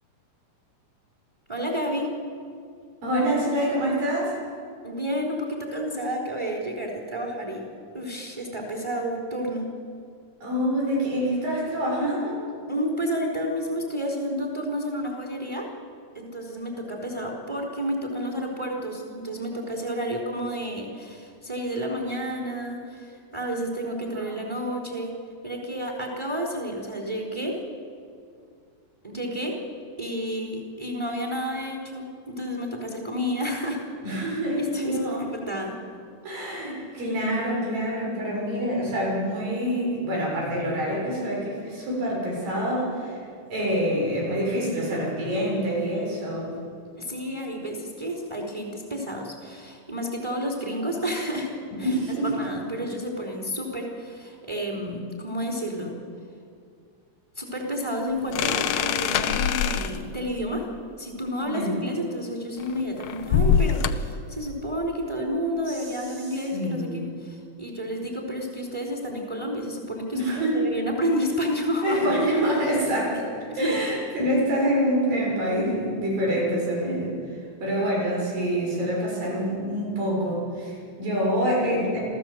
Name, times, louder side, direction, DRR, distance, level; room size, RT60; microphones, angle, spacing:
voice 1, 1.5-2.1 4.8-7.7 7.9-9.7 12.7-15.7 16.1-25.1 25.4-27.6 29.0-29.6 30.0-33.8 34.6-35.8 47.0-51.5 51.8-51.9 52.2-56.0 57.4-60.6 61.0-72.0 73.5-73.8 75.6-75.7, equal, 10° right, -1 dB, 3.4 m, -30 dB
voice 2, 3.0-4.3 10.4-12.4 24.2-24.3 34.0-35.2 36.2-43.2 43.5-46.5 51.8-52.3 61.4-61.8 65.7-66.1 66.5-67.1 70.1-70.6 71.8-77.1 77.6-82.0, equal, 85° right, -3 dB, 8.4 m, -26 dB
sound 1, 58.3-60.1 62.6-64.1, left 8 dB, 80° left, 1.5 m, -24 dB
28.0 x 15.0 x 7.8 m, 2.3 s
omnidirectional pair, 3.9 m